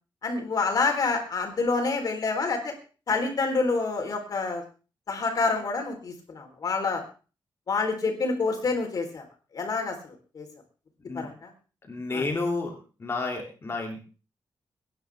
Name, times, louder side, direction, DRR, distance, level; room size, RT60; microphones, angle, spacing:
voice 1, 0.2-2.7 3.1-4.6 5.1-7.0 7.7-9.2 9.5-10.5 11.1-11.5 12.1-12.2, left 4 dB, 50° left, 3 dB, 3.9 m, -27 dB
voice 2, 11.9-12.7 13.0-14.0, left 3 dB, 30° left, 1 dB, 2.9 m, -30 dB
23.0 x 10.5 x 3.6 m, 0.36 s
wide cardioid pair, 155°, 8 cm